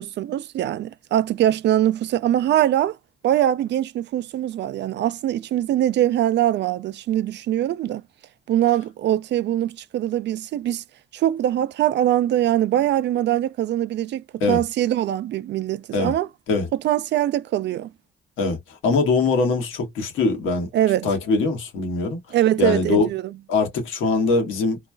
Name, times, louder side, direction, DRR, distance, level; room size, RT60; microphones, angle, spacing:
voice 1, 0.0-3.0 3.2-8.0 8.5-10.8 11.1-16.3 16.7-17.9 20.7-21.1 22.3-23.3, right 12 dB, 60° right, 0.4 m, -22 dB
voice 2, 18.4-20.7 21.0-22.2 22.6-23.1 23.5-24.8, left 3 dB, 90° left, 1.4 m, -22 dB
3.1 x 2.3 x 2.2 m
cardioid pair, 90°, 20 cm